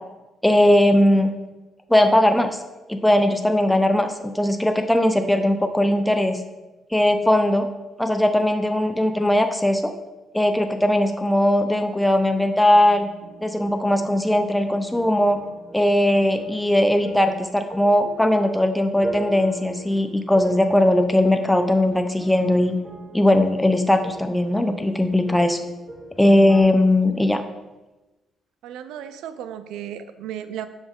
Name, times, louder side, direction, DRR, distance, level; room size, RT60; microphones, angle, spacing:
voice 1, 0.4-1.3 1.9-2.6 2.9-6.4 6.9-7.7 8.0-9.9 10.3-13.1 13.4-15.4 15.7-22.8 23.1-25.6 26.2-27.4, left 1 dB, 5° left, 7 dB, 0.4 m, -19 dB
sound 1, 12.7-26.6, right 2 dB, 45° right, 1.2 m, -41 dB
voice 2, 28.6-30.7, right 10 dB, 90° right, 11 dB, 0.4 m, -34 dB
6.0 x 5.3 x 3.6 m, 1.1 s
cardioid pair, 90°, 0 cm